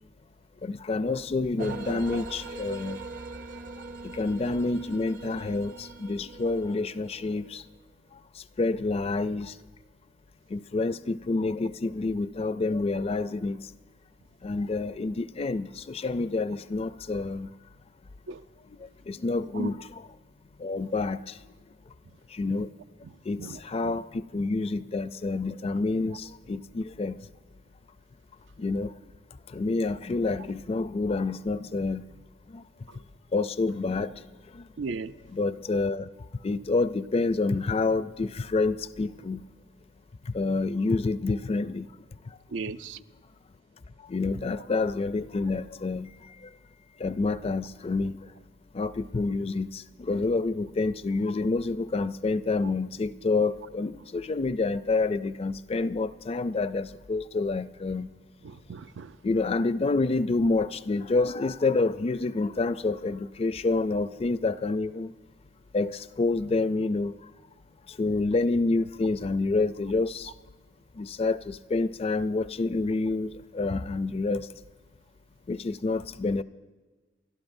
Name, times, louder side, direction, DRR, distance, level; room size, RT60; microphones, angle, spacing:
voice 1, 0.6-3.0 4.0-7.6 8.6-9.5 10.5-13.6 14.4-17.5 19.1-20.0 20.6-21.4 22.3-22.7 23.3-27.2 28.6-28.9 29.5-32.0 32.5-32.6 33.3-34.1 34.5-34.6 35.3-36.1 36.4-39.4 40.3-41.9 44.1-46.1 47.0-48.2 48.7-58.1 59.2-65.1 65.7-67.1 67.9-70.3 71.0-74.5 75.5-76.4, left 3 dB, 35° left, 0.4 m, -28 dB
sound 1, 1.6-7.6, right 3 dB, 45° right, 0.7 m, -41 dB
voice 2, 34.8-35.1 42.5-43.0 58.4-59.1, right 4 dB, 85° right, 0.5 m, -35 dB
30.0 x 12.0 x 2.6 m
head